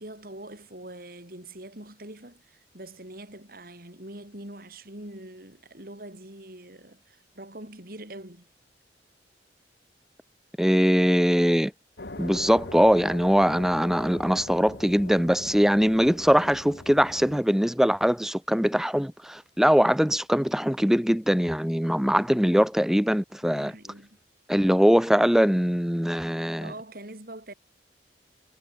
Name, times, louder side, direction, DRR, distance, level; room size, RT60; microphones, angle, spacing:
voice 1, 0.0-8.5 23.4-24.2 26.6-27.5, right 1 dB, 50° right, 5.5 m, -43 dB
voice 2, 10.6-11.7 12.2-23.7 24.5-26.7, equal, ahead, 0.8 m, -22 dB
sound 1, 12.0-17.4, left 2 dB, 65° left, 1.9 m, -41 dB
head